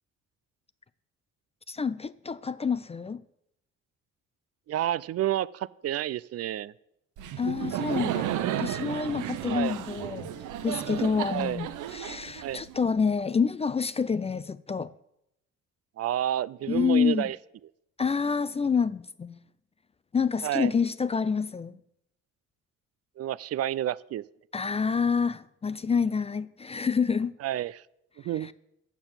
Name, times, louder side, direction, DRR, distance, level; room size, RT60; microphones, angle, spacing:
voice 1, 1.7-3.2 7.4-8.3 8.6-10.3 10.6-14.9 16.7-17.3 18.0-19.4 20.1-21.8 24.5-27.3 28.3-28.5, left 5 dB, 20° left, 0.3 m, -28 dB
voice 2, 4.7-6.7 9.5-9.8 11.3-11.6 12.4-12.6 16.0-17.4 20.4-20.7 23.2-24.2 27.4-27.7 28.3-28.5, right 12 dB, 55° right, 0.4 m, -29 dB
Laughter, 7.2-13.0, right 11 dB, 80° right, 0.8 m, -33 dB
8.1 x 6.9 x 7.2 m
cardioid pair, 90°, 30 cm